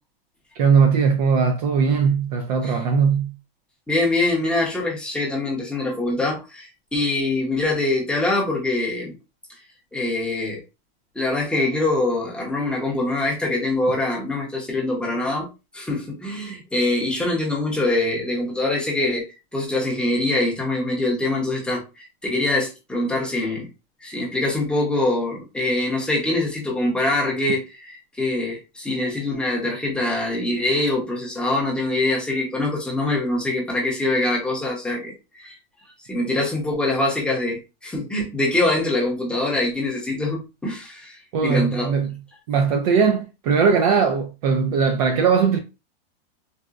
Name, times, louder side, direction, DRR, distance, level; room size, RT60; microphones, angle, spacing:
voice 1, 0.6-3.3 41.3-42.1 42.5-45.6, right 6 dB, 40° right, 0.4 m, -19 dB
voice 2, 3.9-9.1 9.9-10.6 11.2-15.5 15.7-19.3 19.5-23.7 24.0-27.9 28.2-35.5 36.1-41.9, left 2 dB, 5° left, 0.6 m, -24 dB
4.0 x 2.1 x 2.3 m
supercardioid pair, 165°, 30 cm